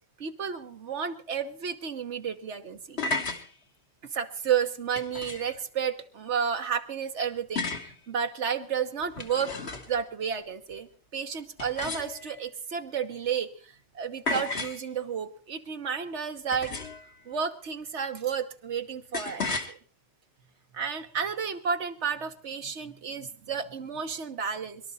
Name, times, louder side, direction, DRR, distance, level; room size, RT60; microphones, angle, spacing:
voice 1, 0.2-3.0 4.0-9.5 9.9-16.7 17.2-19.8 20.7-24.8, right 7 dB, 90° right, 7 dB, 1.4 m, -32 dB
sound 1, 2.7-3.4 4.9-5.6 7.6-7.9 9.0-10.0 11.6-12.4 14.3-14.8 16.5-17.1 19.1-19.7, left 3 dB, 70° left, 1.8 m, -33 dB
23.0 x 12.5 x 4.1 m, 0.40 s
omnidirectional pair, 1.1 m